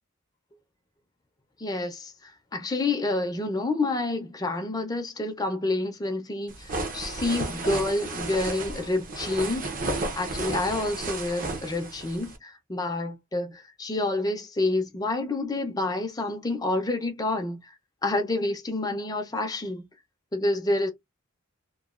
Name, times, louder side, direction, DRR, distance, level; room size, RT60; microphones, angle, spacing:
voice 1, 1.6-9.7 10.2-17.7 18.0-19.9 20.3-20.9, left 2 dB, 20° left, 0.5 m, -28 dB
sound 1, 6.5-12.4, right 2 dB, 40° right, 0.7 m, -33 dB
3.0 x 2.2 x 2.4 m
head